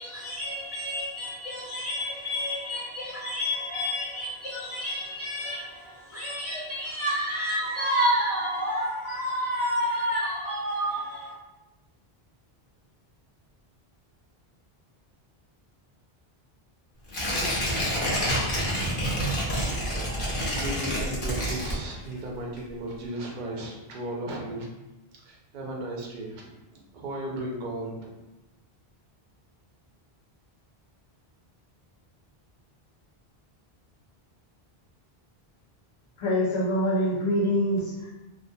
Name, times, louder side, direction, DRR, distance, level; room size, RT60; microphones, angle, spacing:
voice 1, 0.0-11.3, equal, 20° right, 0.5 m, -29 dB
Tearing, 17.1-22.2 22.6-22.7, equal, 60° left, 0.9 m, -28 dB
voice 2, 18.2-18.9 19.3-24.7 25.2-26.5 26.9-28.1, right 1 dB, 60° right, 0.6 m, -36 dB
voice 3, 36.2-38.1, equal, 35° left, 0.6 m, -25 dB
2.5 x 2.0 x 2.6 m
omnidirectional pair, 1.0 m